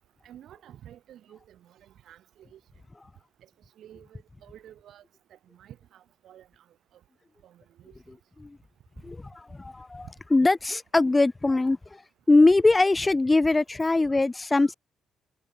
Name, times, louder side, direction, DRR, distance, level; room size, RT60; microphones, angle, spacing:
voice 1, 0.2-2.6 3.8-5.0 5.3-6.5 7.4-8.0, right 11 dB, 75° right, 2.4 m, -51 dB
voice 2, 9.0-12.0 12.3-14.7, left 2 dB, 20° left, 0.8 m, -22 dB
cardioid pair, 90°, 0 cm